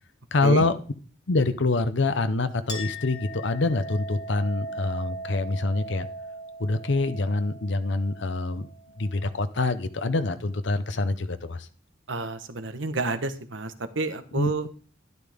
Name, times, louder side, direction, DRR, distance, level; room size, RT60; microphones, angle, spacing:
voice 1, 0.3-0.8 1.3-6.1 6.6-8.7 9.0-11.7 14.3-14.7, left 2 dB, 65° left, 11 dB, 0.8 m, -25 dB
Chink clink, 2.7-9.7, right 1 dB, 25° left, 1.4 m, -39 dB
voice 2, 12.1-14.7, right 3 dB, 80° right, 10 dB, 1.2 m, -30 dB
12.0 x 11.5 x 3.6 m, 0.40 s
head